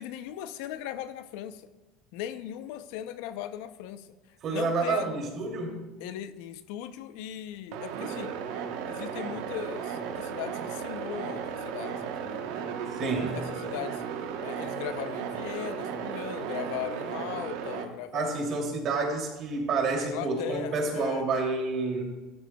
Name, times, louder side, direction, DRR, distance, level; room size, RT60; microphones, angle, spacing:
voice 1, 0.0-1.7 2.1-4.1 4.5-5.1 6.0-8.4 8.9-12.5 12.9-14.0 14.4-18.4 20.0-21.2, left 11 dB, 75° left, 12 dB, 0.6 m, -38 dB
voice 2, 4.4-5.8 12.9-13.3 18.1-22.0, right 3 dB, 45° right, 1 dB, 2.7 m, -29 dB
sound 1, 7.7-17.9, right 7 dB, 75° right, 1.0 m, -35 dB
13.0 x 12.5 x 2.3 m, 1.1 s
supercardioid pair, 115°, 0 cm